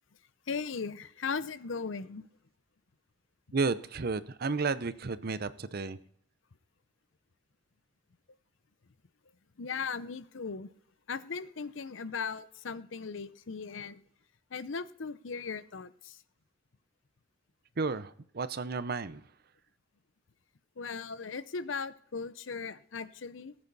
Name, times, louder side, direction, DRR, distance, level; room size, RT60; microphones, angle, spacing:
voice 1, 0.5-2.3 9.6-10.7 11.1-14.0 14.5-16.2 20.8-23.6, left 5 dB, 70° left, 15 dB, 0.7 m, -38 dB
voice 2, 3.5-6.0 17.8-19.2, right 4 dB, 50° right, 15 dB, 0.7 m, -32 dB
19.0 x 8.8 x 4.1 m, 0.64 s
head